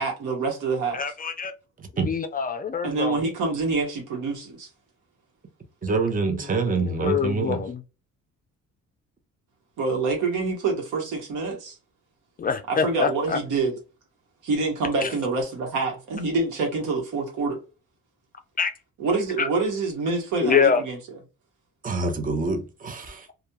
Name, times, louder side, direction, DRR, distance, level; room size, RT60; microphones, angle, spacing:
voice 1, 0.0-1.0 2.8-4.7 9.8-11.8 12.7-13.7 14.4-17.6 19.0-21.0, right 3 dB, 85° right, 1.1 m, -26 dB
voice 2, 0.9-1.5 2.1-3.2 6.3-7.8 12.4-13.4 15.0-15.1 18.6-18.7 19.4-19.5 20.4-20.8, left 6 dB, 30° left, 0.4 m, -25 dB
voice 3, 5.8-7.6 21.8-23.3, right 4 dB, 30° right, 0.6 m, -26 dB
2.3 x 2.2 x 2.8 m
cardioid pair, 90°, 30 cm